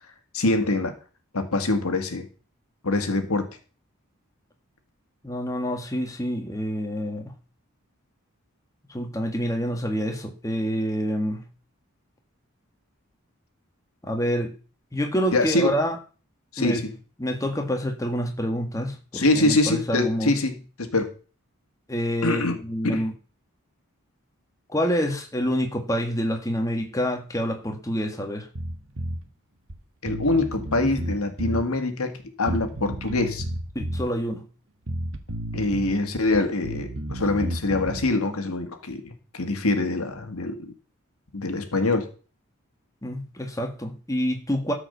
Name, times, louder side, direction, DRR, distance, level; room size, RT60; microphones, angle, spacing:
voice 1, 0.3-0.9 1.3-2.3 2.8-3.5 15.3-15.7 16.5-16.9 19.1-21.1 22.2-22.6 22.8-23.1 30.0-33.4 35.5-40.7 41.3-42.1, left 2 dB, 85° left, 7 dB, 1.7 m, -24 dB
voice 2, 5.2-7.3 8.9-11.5 14.0-14.5 14.9-16.0 16.6-16.8 17.2-20.4 21.9-23.1 24.7-28.5 33.7-34.5 43.0-44.7, equal, 15° left, 4 dB, 1.6 m, -27 dB
Bass guitar, 28.5-29.2 29.7-29.8 30.1-31.7 32.5-34.1 34.9-36.0 36.3-38.1, right 1 dB, 60° right, 1.3 m, -32 dB
13.0 x 4.9 x 6.7 m, 0.36 s
head